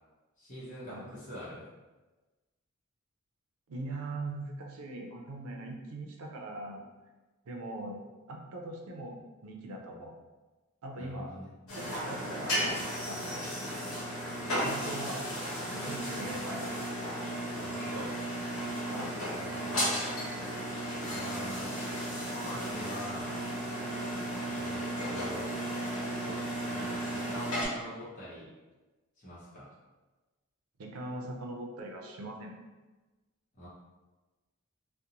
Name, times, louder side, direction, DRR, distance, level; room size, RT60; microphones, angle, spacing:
voice 1, 0.4-1.6 11.0-11.5 16.2-16.4 17.6-18.1 19.4-20.0 21.1-21.7 22.1-23.3 24.5-25.6 26.2-26.4 26.7-28.5 29.2-29.7 33.5-33.7, equal, 35° left, -10 dB, 0.7 m, -44 dB
voice 2, 3.7-6.9 7.5-8.0 8.3-10.1 10.8-11.4 11.7-13.4 14.6-15.3 15.7-16.9 18.9-19.2 30.8-32.6, right 2 dB, 85° right, 1 dB, 0.5 m, -41 dB
sound 1, 11.7-27.7, equal, 90° left, 1.0 m, -34 dB
2.5 x 2.1 x 2.9 m, 1.2 s
head